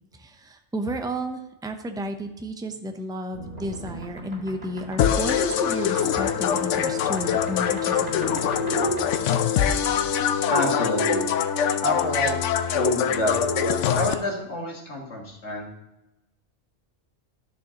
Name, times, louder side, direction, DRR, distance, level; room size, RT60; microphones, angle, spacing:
voice 1, 0.2-8.6, right 1 dB, 5° right, 6 dB, 0.5 m, -32 dB
sound 1, 3.3-11.2 12.5-13.8, right 3 dB, 35° right, 2.2 m, -35 dB
sound 2, 5.0-14.1, left 9 dB, 85° left, 0.9 m, -24 dB
voice 2, 10.5-11.2 11.8-13.3 13.9-15.7, left 1 dB, 70° left, 0 dB, 2.0 m, -27 dB
11.5 x 7.0 x 2.9 m, 0.98 s
omnidirectional pair, 1.2 m